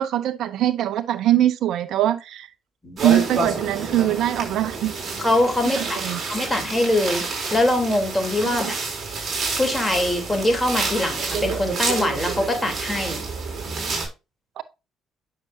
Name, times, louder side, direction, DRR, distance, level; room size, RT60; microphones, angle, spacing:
voice 1, 0.0-2.5 3.0-4.9 5.8-6.2 14.6-14.7, right 12 dB, 65° right, 0.6 m, -22 dB
sound 1, 3.0-14.1, right 4 dB, 40° right, 5.3 m, -28 dB
voice 2, 5.2-6.0 6.3-7.2 7.5-8.8 9.6-13.2, left 1 dB, 10° left, 3.3 m, -23 dB
9.6 x 6.6 x 2.7 m
hypercardioid pair, 60°, 0 cm